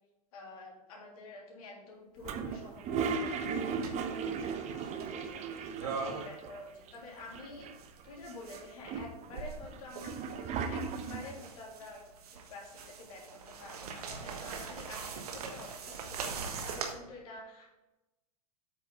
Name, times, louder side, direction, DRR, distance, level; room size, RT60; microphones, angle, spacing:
voice 1, 0.3-7.7 8.0-12.0 12.5-17.7, left 2 dB, 65° left, -2 dB, 3.2 m, -49 dB
Toilet flush, 2.2-6.6 6.9-7.0 7.2-8.0 8.5-11.4, right 5 dB, 35° right, 0.9 m, -36 dB
sound 1, 2.2-2.4 3.8-4.1 4.5-4.6 5.0-5.1 5.7-6.6 6.8-8.7 9.3-16.9, right 5 dB, 70° right, 1.4 m, -42 dB
8.4 x 6.8 x 3.9 m, 0.97 s
hypercardioid pair, 95°, 20 cm